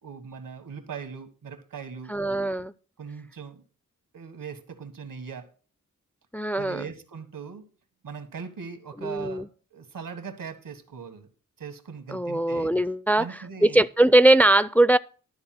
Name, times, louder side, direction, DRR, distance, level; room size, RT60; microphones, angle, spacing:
voice 1, 0.0-2.1 3.0-3.6 4.1-5.5 6.5-7.6 8.0-11.3 11.6-12.7 13.2-13.8, right 6 dB, 85° right, 1.6 m, -40 dB
voice 2, 2.1-2.7 6.3-6.8 9.0-9.5 12.1-13.3 13.6-15.0, right 1 dB, 5° left, 0.4 m, -20 dB
12.0 x 4.2 x 7.7 m
cardioid pair, 45°, 33 cm